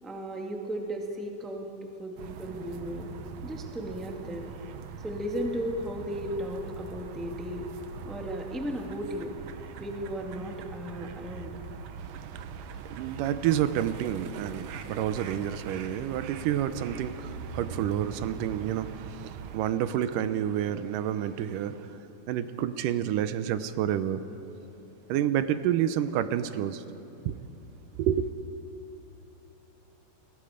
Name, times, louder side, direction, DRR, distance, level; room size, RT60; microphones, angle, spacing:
voice 1, 0.0-3.1 3.4-4.5 5.0-7.7 8.0-9.3 9.8-11.6, equal, ahead, 1 dB, 1.2 m, -35 dB
sound 1, 2.2-19.6, right 6 dB, 65° right, 1.9 m, -41 dB
voice 2, 12.0-22.0 22.3-24.2 25.1-26.8 27.3-27.4 28.0-28.3, right 10 dB, 80° right, 12 dB, 2.3 m, -29 dB
29.0 x 22.0 x 5.1 m, 2.9 s
omnidirectional pair, 3.7 m